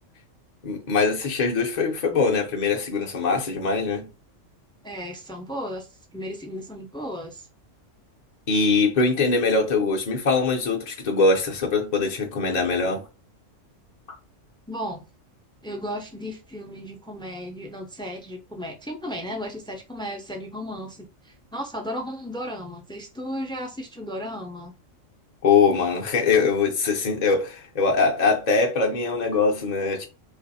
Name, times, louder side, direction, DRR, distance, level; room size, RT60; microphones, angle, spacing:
voice 1, 0.6-4.1 8.5-13.1 25.4-30.0, left 4 dB, 45° left, 0.6 m, -22 dB
voice 2, 4.8-7.5 14.7-15.1 15.6-24.7, equal, 5° left, 0.3 m, -35 dB
3.0 x 2.5 x 4.1 m
omnidirectional pair, 1.3 m